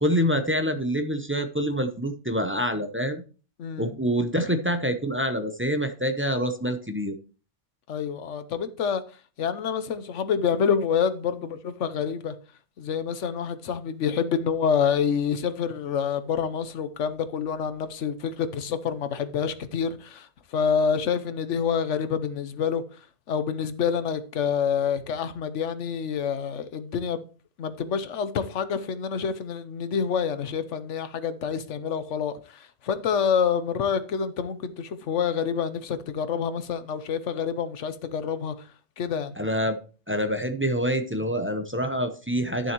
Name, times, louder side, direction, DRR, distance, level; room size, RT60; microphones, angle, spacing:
voice 1, 0.0-3.2 3.8-7.1 39.4-39.8 40.1-42.7, equal, 15° right, 0.6 m, -26 dB
voice 2, 3.6-3.9 7.9-9.0 9.4-12.3 12.8-20.3 20.5-22.8 23.3-27.2 27.6-32.3 32.8-38.5 39.0-39.3, left 7 dB, 75° left, 1.1 m, -27 dB
11.5 x 7.0 x 3.0 m
omnidirectional pair, 1.2 m